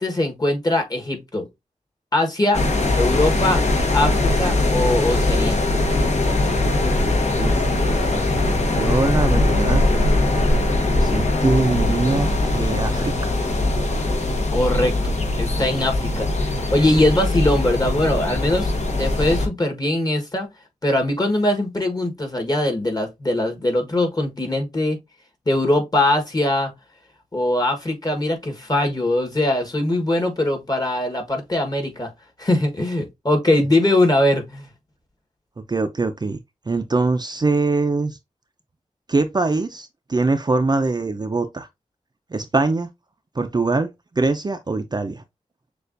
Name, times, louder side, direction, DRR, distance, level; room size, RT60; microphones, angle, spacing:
voice 1, 0.0-1.5 2.1-2.6 3.0-3.6 3.9-5.6 14.5-18.7 19.0-20.5 20.8-25.0 25.5-26.7 27.3-32.1 32.4-34.7, left 1 dB, 30° left, 1.3 m, -21 dB
sound 1, 2.5-19.5, left 2 dB, 60° left, 1.1 m, -21 dB
voice 2, 8.8-9.8 11.0-12.3 12.5-13.4 35.7-36.4 36.7-38.2 39.1-41.7 42.3-42.9 43.4-43.9 44.2-45.2, right 3 dB, 35° right, 0.4 m, -22 dB
6.5 x 2.4 x 2.5 m
wide cardioid pair, 90°, 13 cm